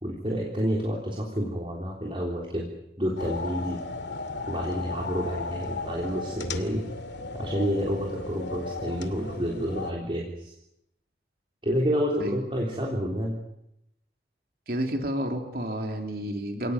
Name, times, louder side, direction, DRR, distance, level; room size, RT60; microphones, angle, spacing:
voice 1, 0.0-2.7 3.0-3.8 4.5-6.8 7.3-10.5 11.6-13.4, equal, 30° right, -1 dB, 3.6 m, -29 dB
sound 1, 3.2-9.9, left 3 dB, 80° left, 2.5 m, -35 dB
voice 2, 14.7-16.7, equal, 55° right, 4 dB, 3.5 m, -30 dB
28.5 x 18.5 x 9.4 m, 0.82 s
head